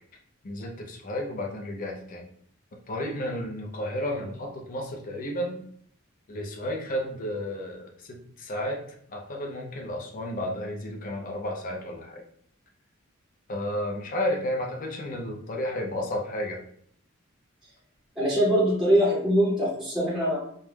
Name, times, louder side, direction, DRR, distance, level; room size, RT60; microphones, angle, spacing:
voice 1, 0.4-2.3 2.9-5.6 6.3-8.8 9.1-12.2 13.5-16.6, left 1 dB, 40° left, 2 dB, 0.5 m, -32 dB
voice 2, 18.2-20.4, equal, ahead, -8 dB, 0.6 m, -22 dB
2.3 x 2.0 x 3.2 m, 0.64 s
head